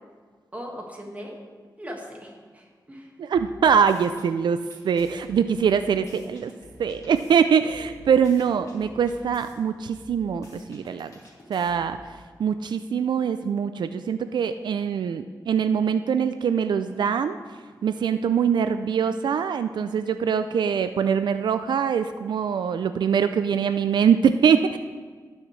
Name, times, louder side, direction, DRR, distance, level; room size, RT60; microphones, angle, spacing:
voice 1, 0.5-1.4 1.8-3.1, equal, 20° right, 0 dB, 1.7 m, -39 dB
voice 2, 3.2-6.5 6.8-11.1 11.5-12.0 12.4-17.4 17.8-24.8, right 7 dB, 90° right, 10 dB, 0.3 m, -23 dB
sound 1, 3.3-4.3 4.7-7.3 7.7-9.5 9.9-12.0, left 1 dB, 50° left, 2.4 m, -49 dB
17.5 x 6.3 x 3.2 m, 1.5 s
wide cardioid pair, 130°, 7 cm